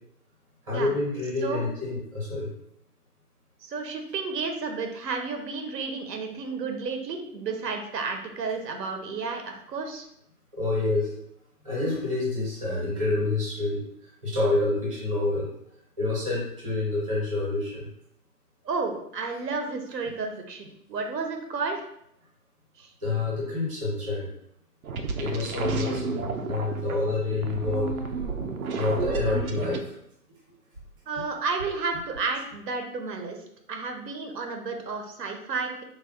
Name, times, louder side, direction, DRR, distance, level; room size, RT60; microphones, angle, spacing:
voice 1, 0.7-2.5 10.5-11.1 11.6-13.8 14.2-15.5 16.0-17.9 23.0-24.3 25.2-27.9 28.7-29.8, left 2 dB, 20° right, -5 dB, 0.8 m, -27 dB
voice 2, 3.6-10.1 18.6-21.8 22.8-22.9 31.1-33.4 33.7-35.8, right 4 dB, 85° right, 4 dB, 0.8 m, -32 dB
sound 1, 24.8-29.8, right 4 dB, 60° right, 0.5 m, -31 dB
3.4 x 2.3 x 3.5 m, 0.75 s
hypercardioid pair, 175°, 48 cm